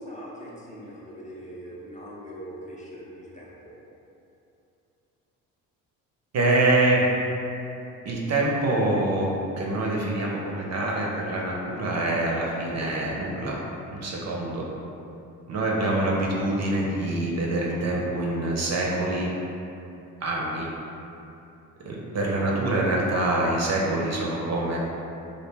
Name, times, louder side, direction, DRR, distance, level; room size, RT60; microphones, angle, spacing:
voice 1, 0.0-3.8, equal, 20° left, -6 dB, 0.5 m, -41 dB
voice 2, 6.3-7.0 8.0-9.3 9.6-13.6 13.9-14.7 15.5-19.3 20.2-20.7 21.8-24.8, right 2 dB, 40° right, -3 dB, 0.5 m, -25 dB
2.5 x 2.1 x 3.3 m, 2.8 s
supercardioid pair, 65°, 39 cm